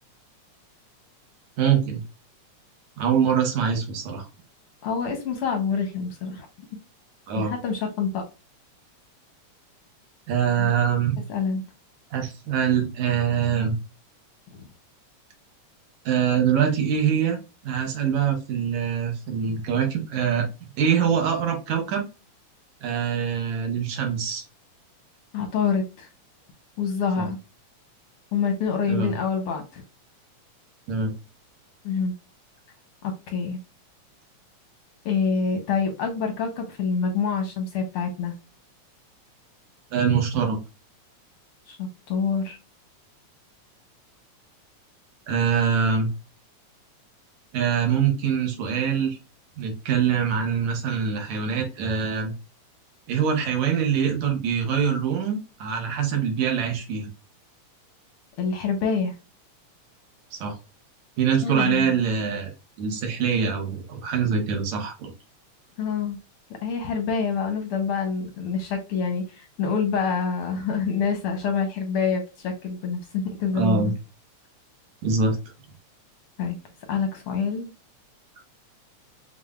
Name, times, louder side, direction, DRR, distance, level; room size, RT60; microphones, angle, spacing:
voice 1, 1.6-2.0 3.0-4.3 7.3-7.5 10.3-11.2 12.1-13.7 16.1-17.4 17.6-20.5 20.8-22.0 22.8-24.4 27.2-27.3 28.9-29.2 30.9-31.1 39.9-40.6 45.3-46.1 47.5-49.2 49.6-52.3 53.1-57.1 60.3-60.6 61.2-62.5 62.8-65.1 73.5-73.9 75.0-75.4, right 7 dB, 70° right, 3 dB, 2.2 m, -24 dB
voice 2, 4.8-6.5 7.4-8.2 10.6-10.7 11.3-11.6 14.5-14.6 25.3-26.1 26.8-27.4 28.3-29.8 31.8-32.1 33.0-33.6 35.0-38.3 41.7-42.6 58.4-59.1 61.4-61.9 65.8-66.2 66.6-73.9 76.4-76.6 76.9-77.7, left 5 dB, 75° left, 4 dB, 1.3 m, -26 dB
7.1 x 2.5 x 2.3 m, 0.28 s
omnidirectional pair, 3.4 m